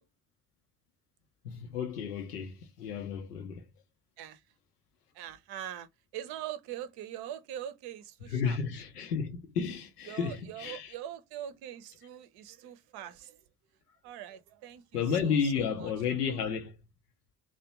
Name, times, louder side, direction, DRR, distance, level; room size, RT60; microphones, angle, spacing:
voice 1, 1.4-3.7 8.3-10.9 14.9-16.8, left 6 dB, 90° left, 0.6 m, -32 dB
voice 2, 5.1-5.9 6.1-8.6 10.1-13.4 14.0-15.9 16.3-16.4, right 11 dB, 60° right, 0.6 m, -43 dB
2.6 x 2.0 x 2.7 m
figure-of-eight pair, 50°, 45 cm